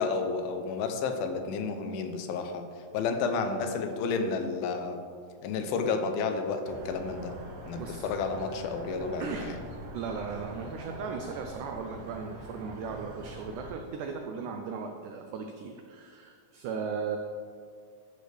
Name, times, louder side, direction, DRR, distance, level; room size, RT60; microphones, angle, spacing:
voice 1, 0.0-2.7 2.9-5.0 5.4-7.3 7.7-9.5, left 4 dB, 85° left, 6 dB, 2.5 m, -31 dB
sound 1, 6.6-13.7, right 1 dB, 75° right, 2.5 m, -44 dB
voice 2, 7.7-8.1 9.2-9.5 9.9-17.2, right 5 dB, 90° right, 4 dB, 1.7 m, -37 dB
10.5 x 6.4 x 3.4 m, 2.2 s
omnidirectional pair, 4.2 m